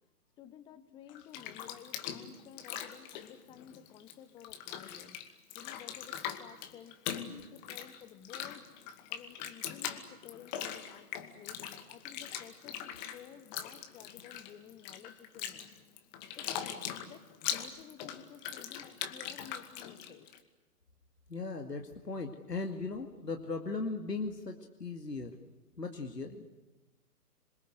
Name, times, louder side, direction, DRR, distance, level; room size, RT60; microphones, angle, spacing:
voice 1, 0.4-5.2 5.5-8.7 9.1-11.1 11.4-15.7 16.3-17.2 17.5-20.3, left 9 dB, 10° left, 14 dB, 0.9 m, -53 dB
Bathtub (filling or washing), 1.1-4.1 4.4-20.4, left 9 dB, 30° left, 2.3 m, -41 dB
voice 2, 21.3-25.4 25.8-26.4, left 3 dB, 90° left, 4 dB, 2.5 m, -38 dB
27.0 x 23.0 x 8.1 m, 1.1 s
figure-of-eight pair, 135°, 47 cm